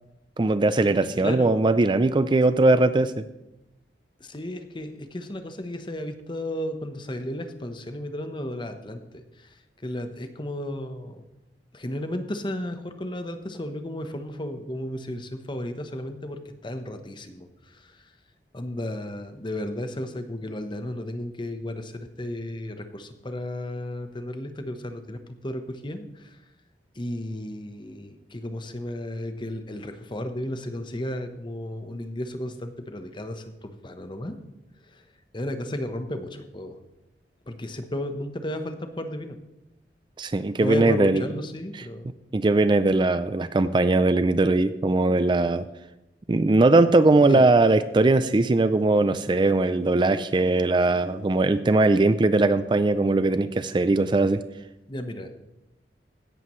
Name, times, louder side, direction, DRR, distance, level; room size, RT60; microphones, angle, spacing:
voice 1, 0.4-3.2 40.2-41.2 42.3-45.7 46.3-54.4, right 2 dB, 25° right, 12 dB, 0.4 m, -20 dB
voice 2, 1.0-1.7 2.4-2.5 4.2-9.0 9.4-9.6 9.8-11.2 11.7-18.1 18.5-26.4 26.9-34.4 34.9-35.0 35.3-36.8 37.5-39.4 40.6-42.1 47.1-47.5 54.9-55.3, left 1 dB, 25° left, 8 dB, 1.0 m, -34 dB
16.0 x 11.5 x 3.1 m, 0.96 s
head